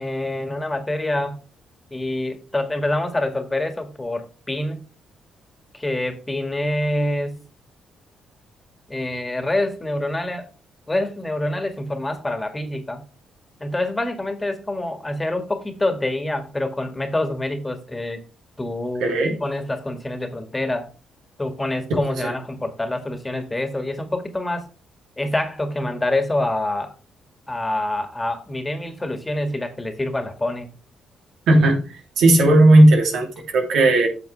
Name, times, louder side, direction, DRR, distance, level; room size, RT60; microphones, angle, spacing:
voice 1, 0.0-1.4 1.9-4.8 5.7-7.4 8.9-10.5 10.9-13.0 13.6-18.2 18.6-19.1 19.4-20.9 21.4-24.7 25.2-26.9 27.5-30.7, left 1 dB, 20° left, 1.9 m, -26 dB
voice 2, 19.0-19.4 22.2-22.3 31.5-34.1, right 1 dB, 75° right, 3.0 m, -15 dB
9.6 x 6.7 x 3.4 m
supercardioid pair, 60°, 0 cm